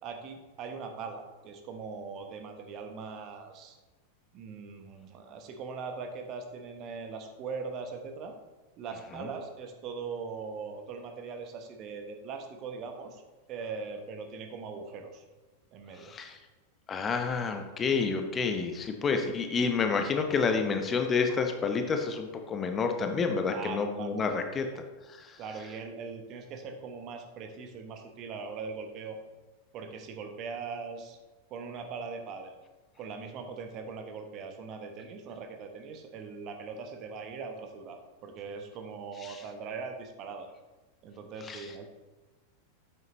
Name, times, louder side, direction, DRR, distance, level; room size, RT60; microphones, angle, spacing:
voice 1, 0.0-3.8 4.3-8.3 8.8-13.2 13.5-15.2 15.7-16.1 23.5-24.2 24.6-24.8 25.4-29.2 29.7-31.2 31.5-32.5 33.0-40.5 41.0-41.9, right 5 dB, 35° right, 5 dB, 1.1 m, -40 dB
voice 2, 16.0-16.4 16.9-24.7 25.2-25.4 39.2-39.4 41.5-41.6, left 5 dB, 20° left, 6 dB, 0.8 m, -29 dB
9.3 x 8.0 x 3.1 m, 1.2 s
figure-of-eight pair, 90°, 0 cm